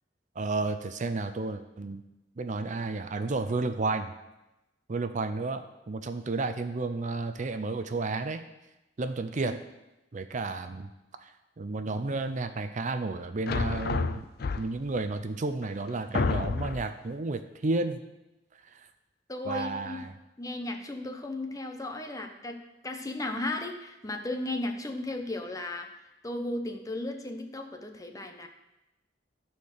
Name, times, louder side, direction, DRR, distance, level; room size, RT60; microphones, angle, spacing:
voice 1, 0.4-2.0 2.4-4.1 4.9-8.4 9.0-9.6 10.1-10.9 11.2-11.3 11.6-14.3 14.6-18.0 18.7-18.8 19.5-20.1, right 3 dB, 40° right, 9 dB, 0.5 m, -32 dB
sound 1, 13.5-15.0 15.6-15.7 16.1-17.0, left 4 dB, 55° left, 0.5 m, -29 dB
voice 2, 19.3-20.0 20.4-25.9 26.2-28.5, left 2 dB, 20° left, 4 dB, 0.8 m, -35 dB
13.0 x 4.4 x 6.6 m, 0.98 s
head